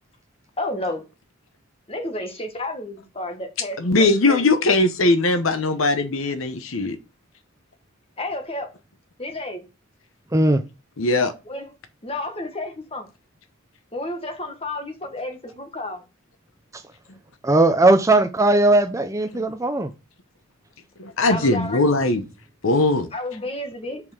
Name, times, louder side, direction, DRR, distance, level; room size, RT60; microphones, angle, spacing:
voice 1, 0.6-1.0 1.9-4.7 8.2-8.7 9.2-9.6 11.5-11.7 12.0-13.1 13.9-16.0 21.3-21.9 23.1-24.0, left 1 dB, 25° left, 1.4 m, -31 dB
voice 2, 3.8-7.0 11.0-11.3 19.3-19.5 21.0-22.2 22.6-23.1, left 2 dB, 70° left, 1.0 m, -20 dB
voice 3, 10.3-10.6 17.4-19.9, right 2 dB, 15° right, 0.5 m, -18 dB
5.5 x 4.8 x 6.3 m
head